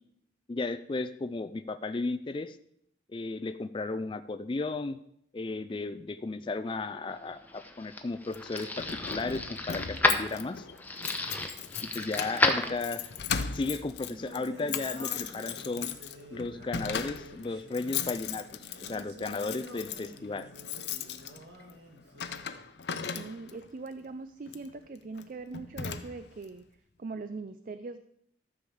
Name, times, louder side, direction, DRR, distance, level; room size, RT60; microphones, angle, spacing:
voice 1, 0.5-2.6 3.1-5.0 5.3-10.7 11.8-13.1 13.5-15.9 16.3-18.5 18.9-20.5, left 3 dB, 30° left, 10 dB, 0.4 m, -34 dB
sound 1, 7.2-13.2, left 2 dB, 10° left, 0.8 m, -31 dB
Keys jangling, 8.3-23.7 24.5-24.7 25.2-25.3 25.5-26.4, left 7 dB, 70° left, 0.7 m, -38 dB
Singing, 14.0-22.6, equal, 70° right, 1.8 m, -50 dB
voice 2, 23.1-26.6 27.0-28.0, right 3 dB, 50° right, 11 dB, 0.4 m, -41 dB
13.0 x 4.9 x 7.0 m, 0.72 s
head